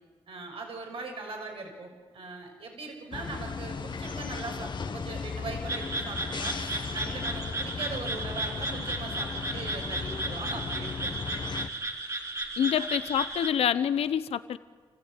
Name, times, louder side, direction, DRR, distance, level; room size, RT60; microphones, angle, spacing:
voice 1, 0.3-6.6 6.9-11.1 12.8-12.9, right 3 dB, 65° right, 2 dB, 6.0 m, -40 dB
sound 1, 3.1-11.7, left 5 dB, 50° left, 1.5 m, -36 dB
sound 2, 5.7-13.5, right 2 dB, 35° right, 4.0 m, -34 dB
voice 2, 12.6-14.6, left 9 dB, 85° left, 14 dB, 0.9 m, -27 dB
28.5 x 15.5 x 9.2 m, 1.5 s
cardioid pair, 70°, 10 cm